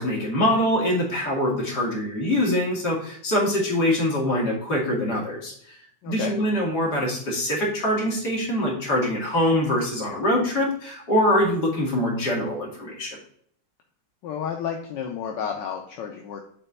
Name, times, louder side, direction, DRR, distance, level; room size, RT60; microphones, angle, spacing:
voice 1, 0.0-5.5 6.0-13.2, left 1 dB, 60° left, -2 dB, 2.5 m, -24 dB
voice 2, 6.0-6.3 14.2-16.4, left 7 dB, 80° left, 2 dB, 1.4 m, -31 dB
5.5 x 4.0 x 5.4 m, 0.62 s
omnidirectional pair, 2.0 m